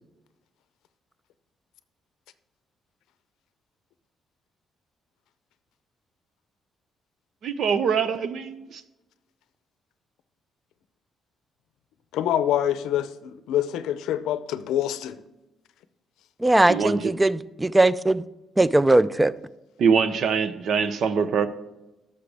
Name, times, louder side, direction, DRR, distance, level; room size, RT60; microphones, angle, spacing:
voice 1, 7.4-8.8 16.7-17.1 19.8-21.5, right 6 dB, 65° right, 12 dB, 0.7 m, -23 dB
voice 2, 12.1-15.2, left 11 dB, 85° left, 13 dB, 0.5 m, -26 dB
voice 3, 16.4-18.2 18.6-19.3, right 2 dB, 10° right, 17 dB, 0.4 m, -19 dB
11.0 x 6.7 x 3.4 m, 1.0 s
cardioid pair, 90°, 0 cm